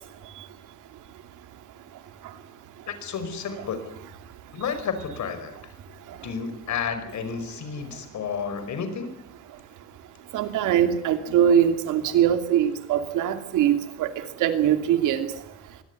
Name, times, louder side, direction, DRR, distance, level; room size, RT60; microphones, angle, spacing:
voice 1, 2.9-3.9 4.5-5.7 6.2-9.2, left 6 dB, 70° left, 10 dB, 5.1 m, -31 dB
voice 2, 10.3-13.7 14.0-14.1 14.4-15.3, right 9 dB, 90° right, 8 dB, 2.8 m, -21 dB
24.0 x 18.0 x 9.6 m, 0.74 s
cardioid pair, 90°, 30 cm